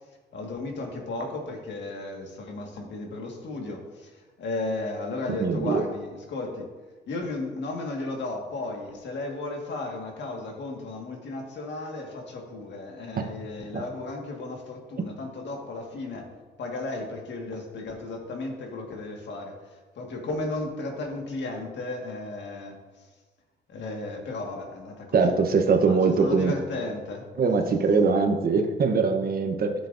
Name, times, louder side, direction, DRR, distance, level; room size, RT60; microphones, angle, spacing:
voice 1, 0.3-6.7 7.1-16.3 16.6-23.1 23.7-25.4 25.9-27.3, left 2 dB, 65° left, 2 dB, 1.8 m, -34 dB
voice 2, 5.4-5.8 13.2-13.3 13.7-13.8 25.1-26.5 27.4-29.7, right 4 dB, 50° right, 5 dB, 1.0 m, -22 dB
12.5 x 7.1 x 2.6 m, 1.3 s
cardioid pair, 90°, 20 cm